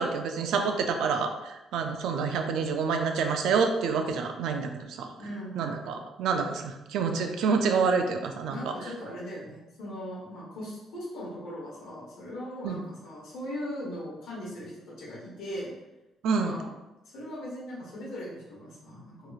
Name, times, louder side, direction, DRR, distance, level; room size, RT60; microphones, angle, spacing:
voice 1, 0.0-4.7 5.0-5.1 5.6-8.7 12.6-12.8 16.2-16.5, right 5 dB, 85° right, 5 dB, 0.3 m, -27 dB
voice 2, 5.2-5.7 8.5-15.7 16.2-16.7 17.1-19.3, equal, 80° left, -4 dB, 1.1 m, -39 dB
2.9 x 2.7 x 2.4 m, 1.0 s
cardioid pair, 90°, 0 cm